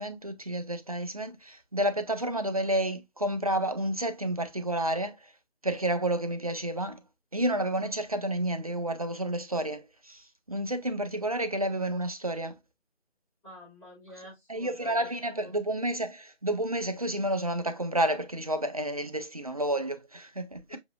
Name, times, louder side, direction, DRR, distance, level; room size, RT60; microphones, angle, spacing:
voice 1, 0.0-5.3 5.6-7.0 7.3-12.5 14.5-20.8, right 1 dB, 35° right, 0.5 m, -30 dB
voice 2, 13.4-15.1 15.4-15.5 20.7-20.8, equal, ahead, 1.0 m, -48 dB
6.9 x 2.4 x 2.2 m
figure-of-eight pair, 160°, 33 cm